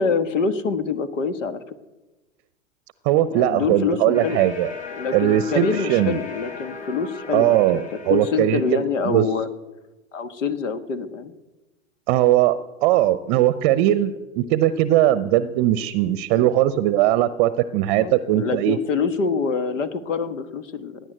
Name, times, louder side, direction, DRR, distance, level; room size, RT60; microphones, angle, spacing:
voice 1, 0.0-1.6 3.3-4.4 4.9-9.5 10.1-11.3 16.3-16.5 17.9-21.0, left 5 dB, 70° left, 12 dB, 1.5 m, -25 dB
voice 2, 3.0-4.7 5.1-6.2 7.3-9.2 12.1-18.8, right 13 dB, 40° right, 15 dB, 0.7 m, -20 dB
sound 1, 4.1-9.0, left 5 dB, 20° left, 4.3 m, -36 dB
18.0 x 10.0 x 7.9 m, 1.1 s
hypercardioid pair, 100°, 39 cm